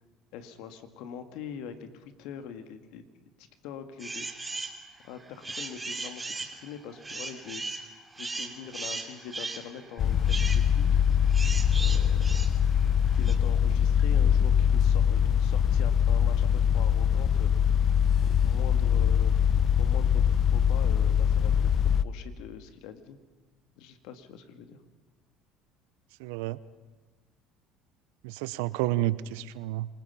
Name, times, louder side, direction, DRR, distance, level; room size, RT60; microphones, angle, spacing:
voice 1, 0.3-3.0 3.4-4.5 5.0-7.8 8.2-11.0 11.8-12.4 13.1-16.5 16.7-17.8 18.2-19.3 19.8-23.2 23.8-24.8 28.9-29.0, left 8 dB, 70° left, 9 dB, 2.0 m, -43 dB
sound 1, 4.0-4.8 5.2-13.4, right 3 dB, 20° right, 2.9 m, -37 dB
sound 2, 10.0-22.0, left 8 dB, 50° left, 0.8 m, -23 dB
voice 2, 26.2-26.6 28.2-29.9, right 16 dB, 80° right, 17 dB, 0.8 m, -30 dB
27.5 x 20.0 x 5.7 m, 1.3 s
hypercardioid pair, 70°, 0 cm